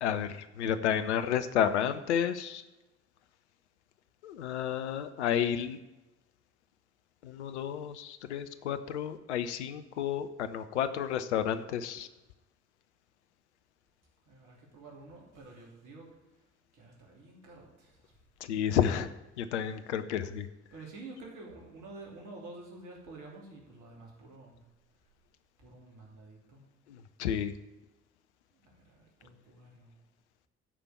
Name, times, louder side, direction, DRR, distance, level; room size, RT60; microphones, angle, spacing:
voice 1, 0.0-2.6 4.2-5.8 7.2-12.1 18.5-19.1 19.4-20.5 27.2-27.5, left 9 dB, 80° left, 11 dB, 0.6 m, -31 dB
voice 2, 14.3-16.1 16.7-18.1 20.7-24.6 25.6-26.7 28.6-29.9, right 2 dB, 65° right, -1 dB, 2.9 m, -49 dB
12.0 x 5.1 x 7.1 m, 1.0 s
figure-of-eight pair, 40°, 34 cm